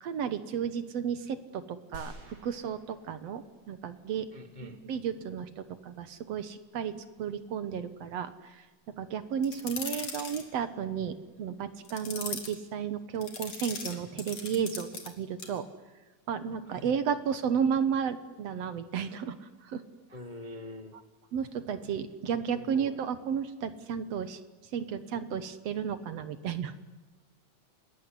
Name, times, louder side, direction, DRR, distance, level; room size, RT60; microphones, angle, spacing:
voice 1, 0.0-4.3 4.6-8.7 9.0-15.7 16.3-19.8 21.3-24.4 24.7-26.7, right 7 dB, 60° right, 12 dB, 2.1 m, -33 dB
sound 1, 1.9-3.9 4.2-4.3, right 2 dB, 80° right, 7.2 m, -50 dB
voice 2, 4.3-4.8 16.7-16.9 20.1-21.0 22.6-22.9, left 2 dB, 40° left, 7 dB, 0.6 m, -44 dB
sound 2, 9.4-10.4 11.8-12.6 13.2-15.1 15.4-15.6, left 5 dB, 60° left, 4.2 m, -39 dB
28.0 x 20.0 x 9.9 m, 1.3 s
omnidirectional pair, 3.5 m